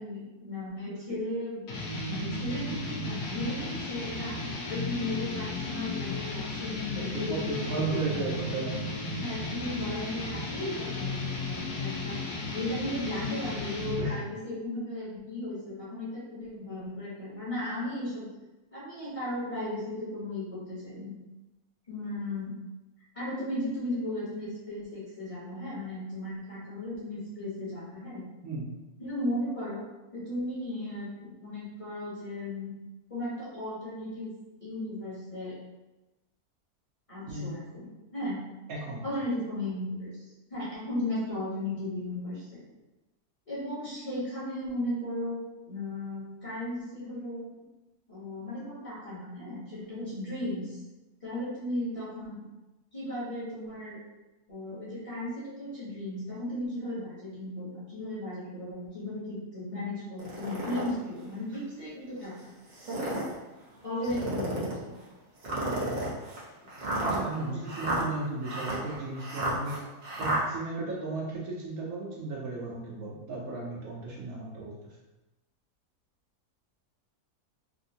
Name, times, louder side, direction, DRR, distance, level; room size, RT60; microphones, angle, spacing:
voice 1, 0.0-1.7 2.1-8.3 8.6-8.7 9.1-12.2 12.5-18.2 18.7-21.1 21.9-22.5 23.1-28.2 29.0-29.8 30.1-32.7 33.1-34.3 34.6-35.6 37.1-38.4 39.0-40.2 40.5-42.6 43.5-45.4 45.6-47.6 48.1-50.8 51.2-52.4 52.9-54.0 54.5-62.3 63.0-63.2 63.8-65.0 67.3-67.7, left 1 dB, 25° left, -10 dB, 1.0 m, -36 dB
sound 1, 1.7-14.2, left 2 dB, 85° left, 1.3 m, -34 dB
voice 2, 6.9-8.8 9.3-9.6 14.0-14.3 28.4-28.7 37.3-37.5 38.7-39.0 67.0-69.8 70.2-74.9, right 2 dB, 70° right, -3 dB, 1.1 m, -35 dB
sound 2, 60.2-60.9 61.5-61.6 62.7-63.3 64.0-64.8 65.4-70.4, right 2 dB, 50° right, 0.5 m, -32 dB
3.4 x 2.6 x 2.7 m, 1.1 s
omnidirectional pair, 1.6 m